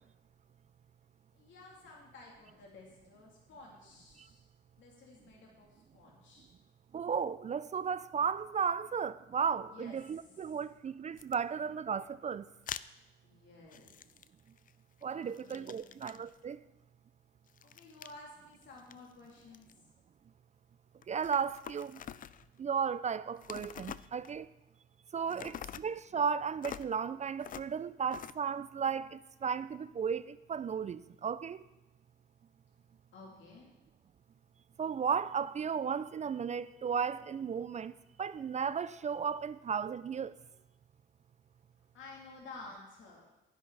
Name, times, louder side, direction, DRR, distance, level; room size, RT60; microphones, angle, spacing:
voice 1, 1.3-4.4 4.8-6.5 9.7-10.0 13.2-13.9 15.1-15.8 17.6-19.7 25.3-25.8 33.1-33.7 41.9-43.3, left 3 dB, 70° left, 2.8 m, -53 dB
voice 2, 6.9-12.5 15.0-16.6 21.1-22.0 22.6-24.5 25.1-31.6 34.8-37.9 38.2-40.4, right 6 dB, 35° right, 0.4 m, -35 dB
sound 1, 11.2-11.4 12.7-12.9 13.7-14.7 15.0-16.4 17.5-18.2 18.6-19.7 21.0-22.5 23.4-24.4 25.3-25.9 26.6-26.9 27.4-27.7 28.1-28.3, left 9 dB, 45° left, 0.4 m, -46 dB
12.5 x 10.5 x 4.0 m
cardioid pair, 90°, 20 cm